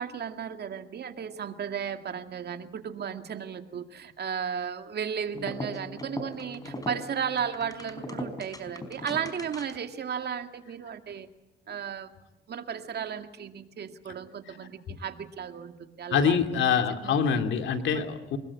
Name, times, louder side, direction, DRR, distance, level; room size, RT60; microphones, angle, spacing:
voice 1, 0.0-11.3 11.7-12.2 12.5-17.2 17.9-18.1, right 7 dB, 55° right, 7 dB, 2.2 m, -35 dB
sound 1, 5.3-9.9, left 1 dB, 20° left, 4.3 m, -39 dB
voice 2, 16.1-18.4, left 7 dB, 75° left, 7 dB, 2.6 m, -25 dB
24.0 x 21.5 x 8.5 m, 1.0 s
cardioid pair, 90°, 20 cm